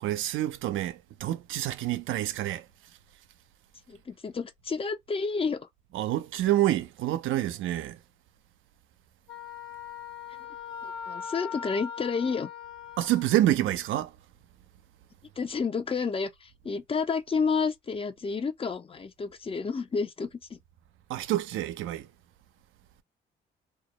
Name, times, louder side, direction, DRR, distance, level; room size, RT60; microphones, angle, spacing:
voice 1, 0.0-2.6 5.9-8.0 13.0-14.1 21.1-22.1, right 14 dB, 80° right, 0.4 m, -27 dB
voice 2, 3.9-5.7 10.4-10.5 10.8-12.5 15.4-20.6, left 5 dB, 30° left, 0.5 m, -30 dB
Wind instrument woodwind instrument, 9.3-13.4, left 8 dB, 60° left, 1.3 m, -40 dB
2.3 x 2.0 x 2.9 m
cardioid pair, 90°, 20 cm